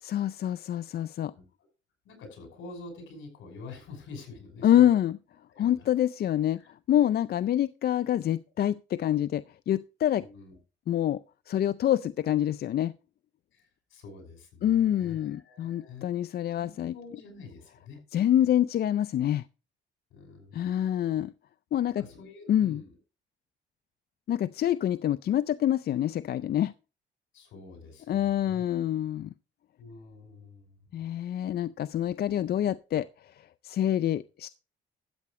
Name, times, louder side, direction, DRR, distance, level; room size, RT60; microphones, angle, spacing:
voice 1, 0.0-1.3 4.6-5.2 5.6-10.2 10.9-11.2 11.5-12.9 14.6-16.9 18.1-19.4 20.5-21.3 21.7-22.0 22.5-22.8 24.3-26.7 28.1-29.3 30.9-33.3 33.6-34.5, left 11 dB, 50° left, 0.4 m, -26 dB
voice 2, 2.0-5.0 5.5-5.9 6.5-6.7 10.2-10.6 13.5-16.1 16.5-18.0 20.1-20.9 22.0-22.9 27.3-28.6 29.8-31.0, left 4 dB, 80° left, 5.7 m, -47 dB
13.0 x 8.4 x 3.2 m
cardioid pair, 90°, 20 cm